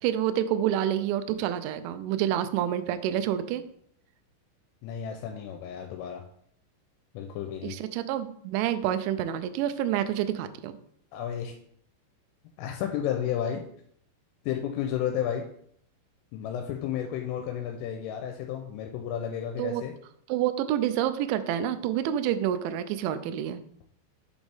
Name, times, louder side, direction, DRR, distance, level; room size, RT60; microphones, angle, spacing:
voice 1, 0.0-3.6 7.6-10.7 19.6-19.8 20.3-23.6, right 11 dB, 85° right, 10 dB, 2.7 m, -28 dB
voice 2, 4.8-6.2 7.1-7.8 11.1-11.6 12.6-13.6 14.4-15.4 16.3-19.9, left 9 dB, 85° left, 4 dB, 3.1 m, -32 dB
7.2 x 5.3 x 3.4 m, 0.67 s
omnidirectional pair, 5.8 m